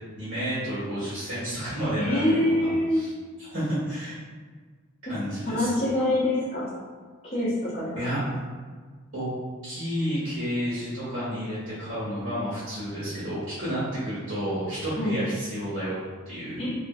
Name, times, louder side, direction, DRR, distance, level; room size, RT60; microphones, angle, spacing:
voice 1, 0.2-3.1 3.4-4.1 5.1-5.7 7.9-8.2 9.1-9.3 9.6-15.9 16.2-16.6, equal, 80° right, -13 dB, 1.4 m, -31 dB
voice 2, 2.0-3.0 5.5-6.7 7.2-8.3 15.0-15.2 16.6-16.7, left 1 dB, 30° left, -12 dB, 0.9 m, -25 dB
2.8 x 2.4 x 2.6 m, 1.5 s
head